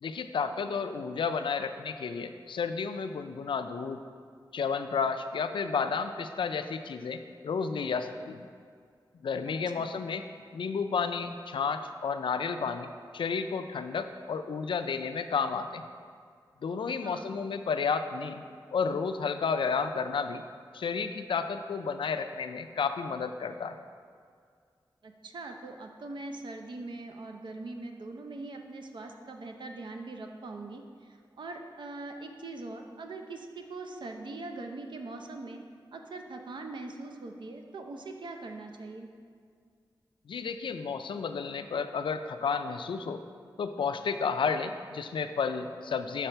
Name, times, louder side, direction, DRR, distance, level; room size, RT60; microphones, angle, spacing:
voice 1, 0.0-4.0 4.5-8.5 9.2-10.2 10.5-12.9 13.1-15.8 16.6-18.4 18.7-20.4 20.7-23.8 40.3-43.2 43.6-46.3, left 5 dB, 85° left, 8 dB, 0.4 m, -32 dB
voice 2, 9.5-9.9 17.0-17.3 25.0-30.8 31.4-35.6 35.9-39.1, right 2 dB, 70° right, 4 dB, 0.6 m, -42 dB
6.7 x 4.8 x 4.4 m, 2.1 s
wide cardioid pair, 125°, 8 cm